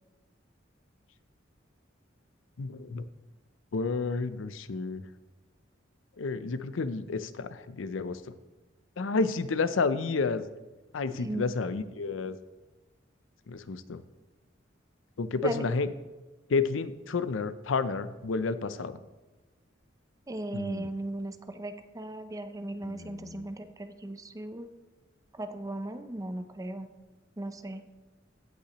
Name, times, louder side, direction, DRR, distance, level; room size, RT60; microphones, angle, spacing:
voice 1, 2.6-3.0 3.7-5.0 6.2-8.2 9.0-10.4 10.9-12.4 13.5-14.0 15.2-15.9 16.5-19.0 20.5-20.9 22.8-23.5, left 4 dB, 80° left, 13 dB, 0.5 m, -30 dB
voice 2, 11.0-11.5 15.4-15.6 20.3-24.7 25.3-26.9 27.4-27.8, right 1 dB, 20° right, 9 dB, 0.5 m, -37 dB
16.5 x 5.7 x 3.0 m, 1.2 s
head